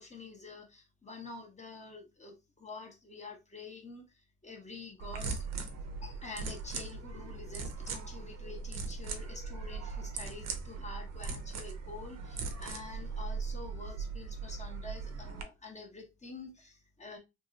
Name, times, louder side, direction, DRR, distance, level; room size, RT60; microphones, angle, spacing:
voice 1, 0.0-5.4 6.0-17.2, left 3 dB, 20° left, 1.0 m, -47 dB
sound 1, 5.0-15.4, right 4 dB, 60° right, 0.8 m, -39 dB
2.9 x 2.9 x 2.4 m
cardioid pair, 100°, 30 cm